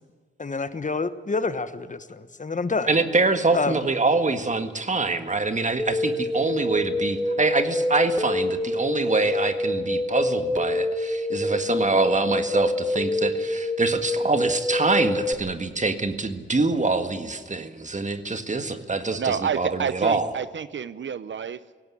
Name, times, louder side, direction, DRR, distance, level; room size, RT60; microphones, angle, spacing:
voice 1, 0.4-2.9 3.5-3.8, left 4 dB, 40° left, 12 dB, 1.2 m, -28 dB
voice 2, 2.9-20.3, right 3 dB, 40° right, 8 dB, 1.8 m, -25 dB
sound 1, 5.8-15.3, left 1 dB, 10° left, 1.5 m, -26 dB
voice 3, 19.2-21.6, right 7 dB, 70° right, 15 dB, 0.7 m, -28 dB
18.0 x 17.0 x 9.9 m, 1.5 s
wide cardioid pair, 80°, 20 cm